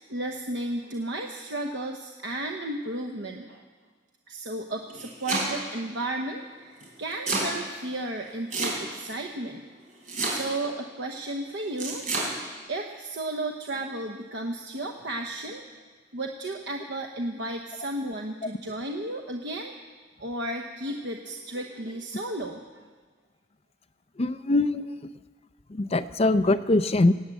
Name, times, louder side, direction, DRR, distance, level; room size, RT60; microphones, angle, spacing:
voice 1, 0.1-3.6 4.3-9.6 10.2-12.0 12.7-15.6 16.1-19.7 20.2-22.9, right 1 dB, 65° right, 3 dB, 1.0 m, -33 dB
Domestic sounds home sounds, 4.7-5.8 6.8-7.5 8.5-9.1 10.1-10.7 11.8-12.3, right 2 dB, 45° right, 3.9 m, -29 dB
voice 2, 24.2-24.8 25.7-27.1, left 2 dB, 35° left, 11 dB, 0.6 m, -22 dB
18.0 x 9.0 x 8.3 m, 1.4 s
head